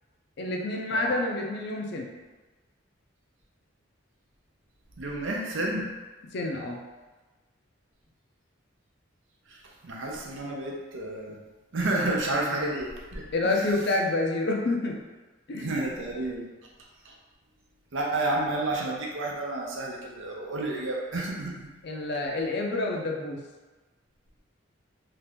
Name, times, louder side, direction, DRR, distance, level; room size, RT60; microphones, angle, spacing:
voice 1, 0.4-2.1 6.3-6.8 13.3-15.0 15.5-15.8 21.8-23.4, left 2 dB, 55° left, 1 dB, 0.4 m, -28 dB
voice 2, 5.0-5.9 9.5-11.4 11.7-13.3 15.6-16.5 17.1-17.2 17.9-21.7, right 2 dB, 70° right, -1 dB, 0.6 m, -30 dB
2.8 x 2.4 x 3.4 m, 1.2 s
head